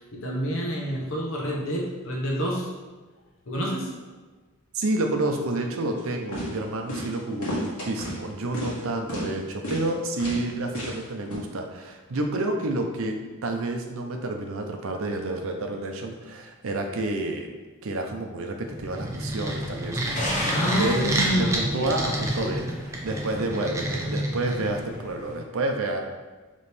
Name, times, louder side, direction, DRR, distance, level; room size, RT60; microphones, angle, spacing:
voice 1, 0.0-2.7 3.5-3.9 20.5-21.9 22.4-22.5, equal, 65° left, -3 dB, 0.8 m, -28 dB
voice 2, 4.7-13.2 13.4-17.5 17.8-21.0 21.3-22.6 23.0-26.0, right 2 dB, 70° right, 3 dB, 0.6 m, -29 dB
sound 1, 6.0-6.1 6.3-6.5 6.9-7.1 7.4-8.2 8.5-8.8 9.1-9.3 9.6-9.9 10.2-10.4 10.7-11.0 11.3-11.4, equal, 90° left, 1.3 m, -32 dB
sound 2, 18.7-25.0, right 1 dB, 15° right, 0.4 m, -29 dB
sound 3, 20.1-25.4, left 1 dB, 35° left, 0.7 m, -36 dB
4.2 x 3.0 x 3.4 m, 1.3 s
head